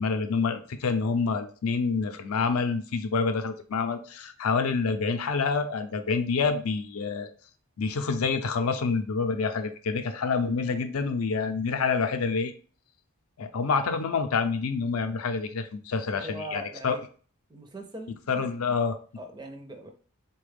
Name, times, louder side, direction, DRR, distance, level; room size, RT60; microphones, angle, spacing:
voice 1, 0.0-7.3 7.8-12.5 13.4-17.0 18.3-19.0, left 4 dB, 80° left, 8 dB, 0.5 m, -27 dB
voice 2, 16.2-17.0 17.5-18.2 19.2-19.9, right 1 dB, 20° right, 5 dB, 0.4 m, -40 dB
3.9 x 2.2 x 3.3 m, 0.41 s
head